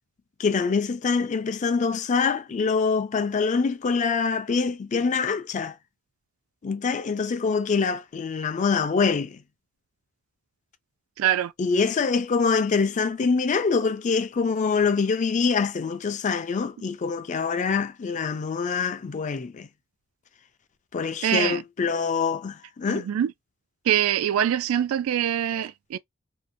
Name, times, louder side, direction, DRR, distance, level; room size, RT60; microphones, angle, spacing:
voice 1, 0.4-5.7 6.6-9.4 11.6-19.7 20.9-23.1, left 5 dB, 35° left, 0.4 m, -25 dB
voice 2, 11.2-11.5 21.2-21.6 22.9-23.3 23.9-26.0, right 10 dB, 80° right, 0.3 m, -24 dB
2.7 x 2.1 x 2.5 m
head